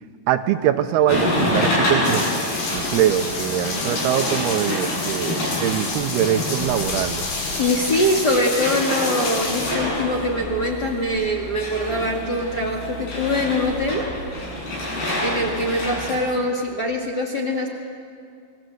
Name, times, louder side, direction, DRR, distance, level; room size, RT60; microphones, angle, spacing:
voice 1, 0.3-2.2 2.7-7.2, right 11 dB, 80° right, 9 dB, 2.8 m, -22 dB
sound 1, 1.1-16.2, left 1 dB, 70° left, 9.0 m, -27 dB
sound 2, 2.0-9.7, left 3 dB, 85° left, 6.4 m, -29 dB
voice 2, 7.6-14.1 15.2-17.7, left 1 dB, 30° left, 0 dB, 2.0 m, -23 dB
28.5 x 20.5 x 7.9 m, 2.3 s
omnidirectional pair, 4.7 m